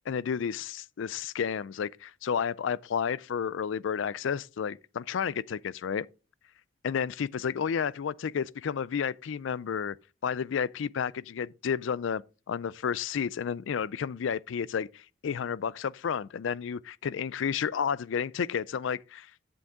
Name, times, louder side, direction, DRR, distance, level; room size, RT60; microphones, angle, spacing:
voice 1, 0.1-6.1 6.8-10.0 10.2-12.2 12.5-19.4, left 7 dB, 70° left, 0.4 m, -31 dB
8.5 x 7.9 x 3.6 m
head